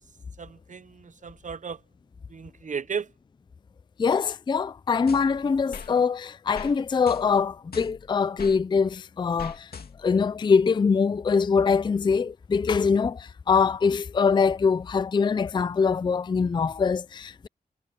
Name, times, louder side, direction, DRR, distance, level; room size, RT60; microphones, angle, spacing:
voice 1, 0.4-1.8 2.3-3.1, right 6 dB, 50° right, 0.8 m, -35 dB
voice 2, 4.0-9.7 10.0-17.5, left 5 dB, 30° left, 0.3 m, -23 dB
sound 1, 5.1-5.9 6.5-6.8 7.1-8.6 9.4-10.2, left 5 dB, 75° left, 2.6 m, -41 dB
wide cardioid pair, 135°, 16 cm